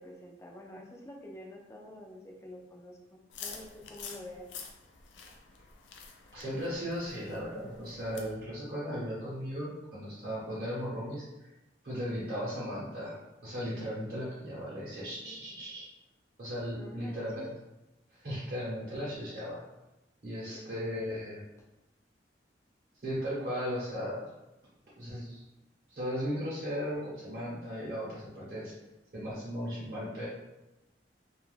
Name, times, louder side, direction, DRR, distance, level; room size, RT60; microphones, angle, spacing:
voice 1, 0.0-4.5 15.2-15.4 16.8-17.5 20.5-20.7 20.9-21.2, left 1 dB, 15° left, -1 dB, 0.3 m, -48 dB
sound 1, 3.3-8.3, left 5 dB, 90° left, 0.4 m, -48 dB
voice 2, 6.3-11.5 11.8-13.2 13.4-15.9 16.4-17.4 18.1-19.6 20.2-21.4 23.0-24.3 25.0-25.4 25.9-28.7 29.1-30.3, equal, 55° right, -9 dB, 0.8 m, -36 dB
2.3 x 2.1 x 3.2 m, 0.98 s
head